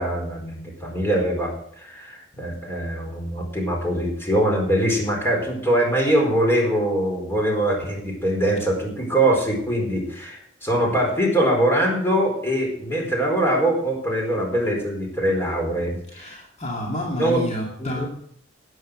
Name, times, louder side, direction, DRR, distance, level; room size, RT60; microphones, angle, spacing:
voice 1, 0.0-16.3 17.2-17.4 17.8-18.1, right 1 dB, 15° left, 0 dB, 4.5 m, -23 dB
voice 2, 16.1-18.0, equal, 35° left, -2 dB, 2.4 m, -29 dB
12.5 x 9.5 x 6.4 m, 0.68 s
head